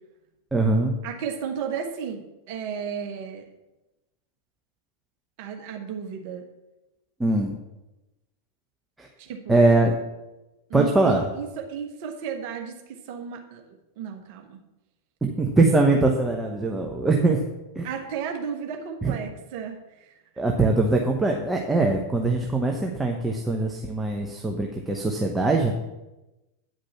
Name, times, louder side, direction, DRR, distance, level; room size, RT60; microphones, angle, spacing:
voice 1, 0.5-0.9 7.2-7.5 9.0-9.1 9.5-9.9 10.7-11.3 15.2-17.4 17.7-17.9 19.0-19.1 20.4-25.7, right 2 dB, 10° right, 1 dB, 1.0 m, -22 dB
voice 2, 1.0-3.5 5.4-6.4 9.2-9.6 10.7-14.6 17.8-20.2, right 7 dB, 45° right, 4 dB, 1.3 m, -34 dB
9.9 x 5.3 x 7.0 m, 1.0 s
figure-of-eight pair, 90°, 0 cm